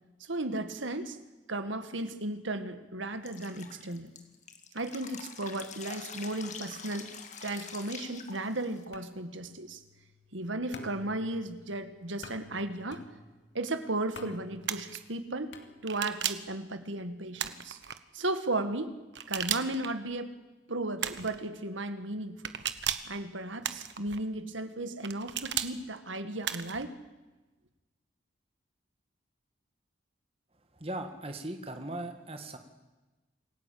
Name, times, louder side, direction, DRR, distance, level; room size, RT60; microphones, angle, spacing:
voice 1, 0.2-1.2 1.5-4.1 4.7-7.1 7.4-9.8 10.3-13.0 13.5-15.6 15.8-17.8 18.1-18.9 19.3-20.4 20.7-22.5 23.0-26.9, right 2 dB, 90° right, 9 dB, 2.0 m, -35 dB
Drip, 3.3-8.8, left 6 dB, 40° left, 2.1 m, -45 dB
sound 1, 8.9-16.3, left 3 dB, 75° left, 2.5 m, -51 dB
sound 2, 14.6-15.0 15.9-16.5 17.4-18.0 19.1-19.9 21.0-21.4 22.4-23.1 23.6-24.2 25.0-25.7 26.4-26.8, right 10 dB, 70° right, 1.3 m, -34 dB
voice 2, 30.7-32.6, right 1 dB, 30° right, 6 dB, 1.9 m, -38 dB
27.5 x 17.5 x 8.7 m, 1.1 s
head